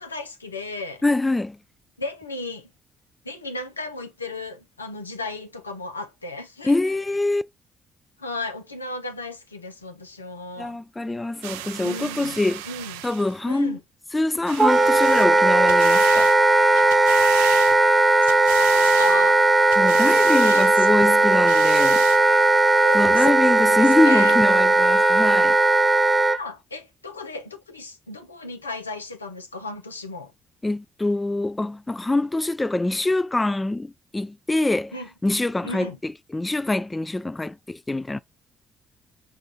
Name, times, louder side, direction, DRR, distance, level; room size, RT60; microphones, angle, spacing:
voice 1, 0.0-1.0 2.0-2.7 3.2-6.7 8.2-10.8 11.8-12.4 12.7-13.0 13.5-13.8 17.6-17.7 18.2-19.4 20.4-21.2 22.8-23.3 23.6-24.4 26.4-30.3 34.9-35.1 35.6-36.0, left 3 dB, 90° left, 0.4 m, -35 dB
voice 2, 1.0-1.6 6.6-7.4 10.6-12.6 13.0-13.8 14.1-16.3 19.8-22.0 22.9-25.6 30.6-34.9 35.2-38.2, left 2 dB, 20° left, 0.4 m, -24 dB
sound 1, 11.4-13.4 14.5-15.3 15.7-16.4 16.7-18.0 18.3-19.2 19.7-20.7 21.3-22.2 22.9-23.0, right 12 dB, 75° right, 0.3 m, -34 dB
Wind instrument woodwind instrument, 14.6-26.4, right 2 dB, 10° right, 0.7 m, -17 dB
5.4 x 2.3 x 4.2 m
figure-of-eight pair, 45°, 0 cm